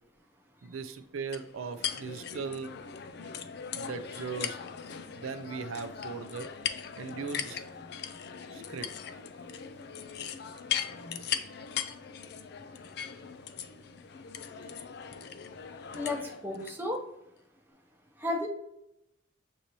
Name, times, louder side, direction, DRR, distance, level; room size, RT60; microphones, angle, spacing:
voice 1, 0.6-2.8 3.7-4.6 5.1-6.5 7.0-7.6 8.5-8.9, right 5 dB, 90° right, 10 dB, 0.4 m, -38 dB
sound 1, 1.3-16.8, left 8 dB, 55° left, 0.3 m, -39 dB
voice 2, 15.9-17.0 18.2-18.5, left 1 dB, 10° right, 0 dB, 0.8 m, -33 dB
6.4 x 2.7 x 3.0 m, 0.82 s
head